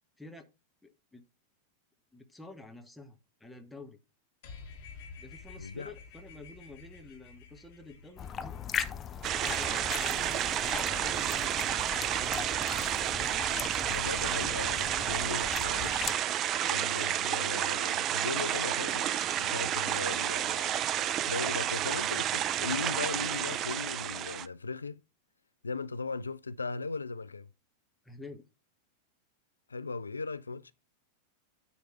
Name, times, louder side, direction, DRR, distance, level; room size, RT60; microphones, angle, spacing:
voice 1, 0.2-0.5 0.8-1.2 2.1-4.0 5.2-8.6 9.5-12.4 28.0-28.4, left 3 dB, 5° left, 1.2 m, -49 dB
sound 1, 4.4-10.0, left 5 dB, 55° left, 1.8 m, -51 dB
voice 2, 5.6-5.9 13.9-16.1 16.7-20.7 21.3-25.0 25.6-27.5 29.7-30.7, left 4 dB, 75° left, 0.3 m, -38 dB
sound 2, 8.2-16.2, left 8 dB, 25° left, 0.6 m, -39 dB
sound 3, 9.2-24.5, right 11 dB, 30° right, 0.4 m, -31 dB
9.3 x 3.3 x 5.5 m
figure-of-eight pair, 90°, 0 cm